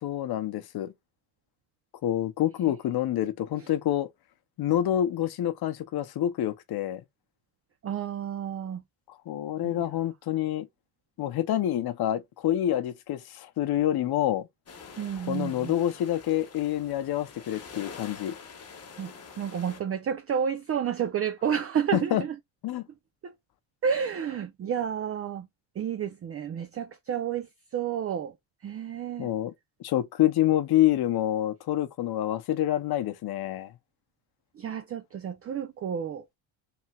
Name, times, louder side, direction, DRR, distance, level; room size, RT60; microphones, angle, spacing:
voice 1, 0.0-0.9 2.0-4.1 4.6-7.0 9.3-10.7 11.2-14.5 15.3-18.4 21.9-22.2 22.6-22.9 29.2-29.5 29.8-33.7, left 12 dB, 50° left, 0.7 m, -27 dB
voice 2, 7.8-8.8 9.6-9.8 15.0-15.7 19.0-22.4 23.2-23.3 23.8-25.5 25.8-28.3 28.6-29.3 34.6-36.2, right 8 dB, 30° right, 0.4 m, -31 dB
sound 1, 14.7-19.8, left 5 dB, 30° left, 0.9 m, -46 dB
3.4 x 2.7 x 4.3 m
cardioid pair, 160°, 48 cm